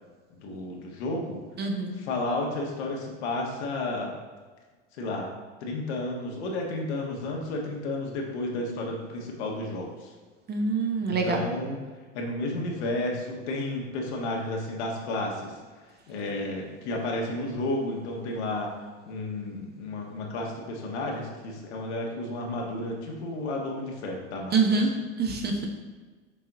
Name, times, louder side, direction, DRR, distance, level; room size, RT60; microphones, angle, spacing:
voice 1, 0.4-1.4 1.9-4.2 4.9-5.3 5.6-10.1 11.0-11.8 12.1-15.5 16.1-18.7 19.0-24.8 25.5-25.7, left 2 dB, 65° left, 0 dB, 1.5 m, -32 dB
voice 2, 1.6-1.9 10.5-11.4 24.5-24.9 25.2-25.5, right 4 dB, 25° right, 2 dB, 1.0 m, -25 dB
6.8 x 4.3 x 3.8 m, 1.4 s
hypercardioid pair, 90°, 36 cm